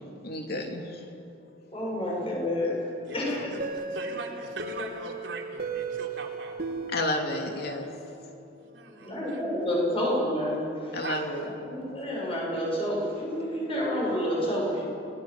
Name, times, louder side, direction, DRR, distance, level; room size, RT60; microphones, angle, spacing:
voice 1, 0.2-0.8 6.9-7.9 10.9-11.5, left 1 dB, 55° left, 2 dB, 3.1 m, -30 dB
voice 2, 1.7-3.5 9.0-11.0 11.6-14.8, equal, 30° left, -3 dB, 7.5 m, -29 dB
voice 3, 3.1-6.6 7.8-8.3 8.6-9.4 11.0-11.2, right 3 dB, 75° right, 0 dB, 3.7 m, -40 dB
sound 1, 3.6-8.3, right 3 dB, 55° right, 2.6 m, -36 dB
30.0 x 19.5 x 7.5 m, 2.8 s
head